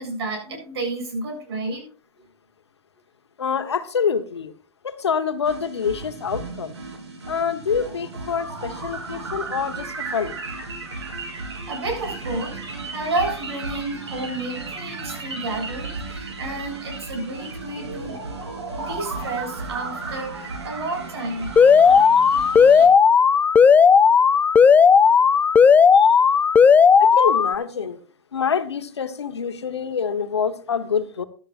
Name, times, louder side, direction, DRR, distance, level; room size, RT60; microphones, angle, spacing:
voice 1, 0.0-1.9 11.5-12.5 12.9-18.4 18.8-21.6 25.0-25.1, right 2 dB, 70° right, 2 dB, 7.2 m, -31 dB
voice 2, 3.4-4.5 4.8-6.8 7.3-10.3 25.9-26.1 27.0-28.0 28.3-31.2, left 6 dB, 90° left, 10 dB, 1.2 m, -26 dB
sound 1, 5.4-22.9, right 3 dB, 90° right, 3.7 m, -34 dB
Alarm, 21.6-27.6, left 6 dB, 10° left, 0.4 m, -14 dB
14.5 x 12.0 x 2.5 m, 0.41 s
hypercardioid pair, 115°, 14 cm